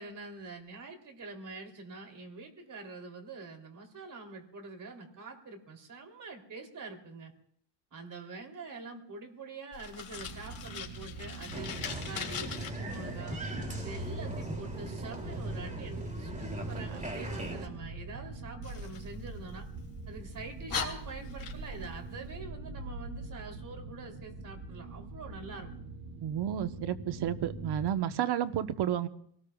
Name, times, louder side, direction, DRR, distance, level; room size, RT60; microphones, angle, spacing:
voice 1, 0.0-7.3 7.9-13.4 13.8-19.7 20.1-25.7, right 3 dB, 45° right, 3 dB, 3.4 m, -45 dB
Fire, 9.7-12.7 18.6-19.8 20.3-20.4 20.7-21.9, left 7 dB, 50° left, 3.0 m, -40 dB
sound 1, 10.1-27.9, right 2 dB, 85° right, 2.2 m, -43 dB
Applause, 11.5-17.7, right 1 dB, 15° right, 2.9 m, -39 dB
voice 2, 26.2-29.1, right 10 dB, 65° right, 10 dB, 1.2 m, -31 dB
26.5 x 18.5 x 2.4 m, 0.66 s
cardioid pair, 105°, 44 cm